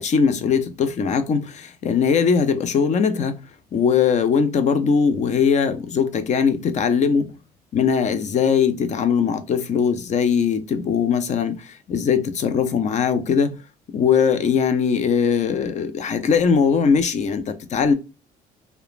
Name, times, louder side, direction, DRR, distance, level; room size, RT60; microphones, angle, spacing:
voice 1, 0.0-3.4 3.7-7.3 7.7-13.6 13.9-17.9, left 6 dB, 45° left, 0.5 m, -20 dB
3.0 x 2.1 x 2.3 m
cardioid pair, 110°, 17 cm